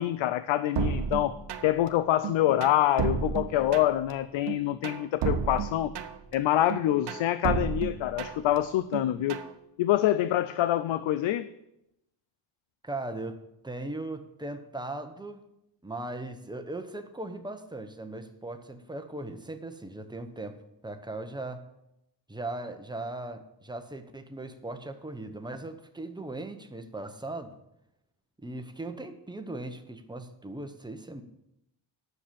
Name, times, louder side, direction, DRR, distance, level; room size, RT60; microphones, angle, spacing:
voice 1, 0.0-1.3 1.6-5.9 6.3-9.4 9.8-11.5, left 13 dB, 80° left, 13 dB, 0.6 m, -26 dB
sound 1, 0.8-1.9 2.2-4.1 4.5-6.3 6.7-8.6 8.9-9.5, right 6 dB, 65° right, 1.0 m, -32 dB
voice 2, 12.8-13.4 13.6-15.4 15.8-21.6 22.3-27.6 28.4-31.2, right 2 dB, 10° right, 7 dB, 0.8 m, -38 dB
10.0 x 6.7 x 7.5 m, 0.84 s
wide cardioid pair, 150°, 45 cm